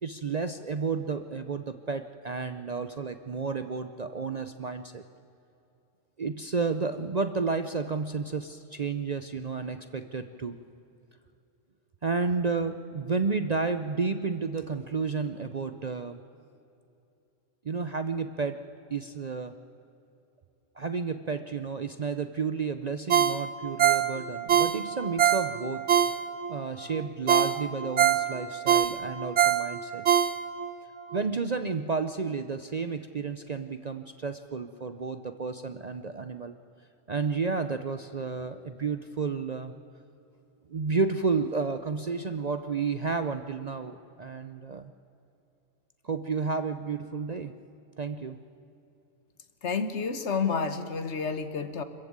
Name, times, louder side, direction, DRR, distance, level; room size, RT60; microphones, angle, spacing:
voice 1, 0.0-5.0 6.2-10.6 12.0-16.2 17.6-18.6 18.9-19.6 20.8-25.9 26.5-30.0 31.1-36.6 37.1-39.7 40.7-44.9 46.0-47.6 48.0-48.4, right 4 dB, 40° right, 9 dB, 0.6 m, -31 dB
Ringtone, 23.1-26.6 26.9-27.0 27.3-30.7 31.1-31.2, right 9 dB, 65° right, 1.2 m, -24 dB
voice 2, 49.6-51.8, left 5 dB, 65° left, 10 dB, 1.4 m, -30 dB
25.5 x 14.5 x 8.7 m, 2.8 s
omnidirectional pair, 1.3 m